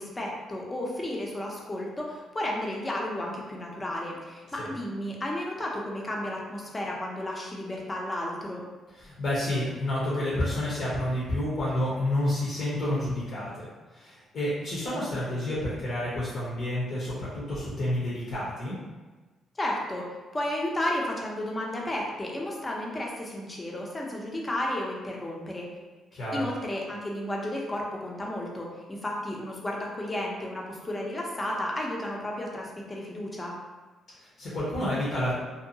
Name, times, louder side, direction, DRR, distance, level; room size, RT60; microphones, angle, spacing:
voice 1, 0.0-8.6 19.6-20.1 20.3-25.7 26.3-33.5, left 1 dB, 20° left, -2 dB, 0.6 m, -33 dB
voice 2, 9.0-13.6 13.9-18.8 26.1-26.5 34.2-35.3, left 1 dB, 65° left, -7 dB, 0.8 m, -29 dB
2.6 x 2.2 x 2.7 m, 1.3 s
cardioid pair, 90°, 0 cm